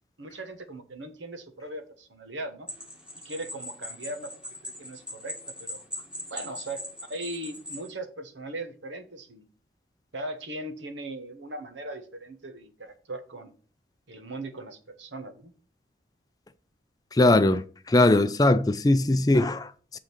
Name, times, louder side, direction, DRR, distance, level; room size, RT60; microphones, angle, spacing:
voice 1, 0.2-2.7 3.2-4.3 4.6-5.8 6.3-9.4 10.1-13.5 14.1-15.5, right 1 dB, 90° right, 1.2 m, -39 dB
sound 1, 2.7-7.9, left 1 dB, 5° right, 1.4 m, -40 dB
voice 2, 17.2-17.6 17.9-20.0, left 2 dB, 20° left, 0.4 m, -20 dB
7.3 x 3.8 x 6.4 m
head